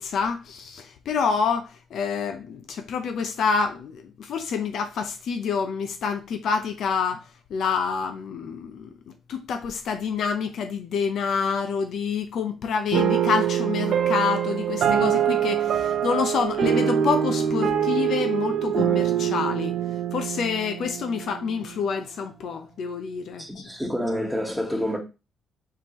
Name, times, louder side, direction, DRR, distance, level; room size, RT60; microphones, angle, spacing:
voice 1, 0.0-19.7 20.1-23.6, left 6 dB, 70° left, 0.6 m, -27 dB
sound 1, 12.9-21.5, right 9 dB, 70° right, 0.6 m, -24 dB
voice 2, 23.4-25.0, equal, ahead, 1.3 m, -28 dB
4.6 x 3.7 x 3.0 m
cardioid pair, 90°, 0 cm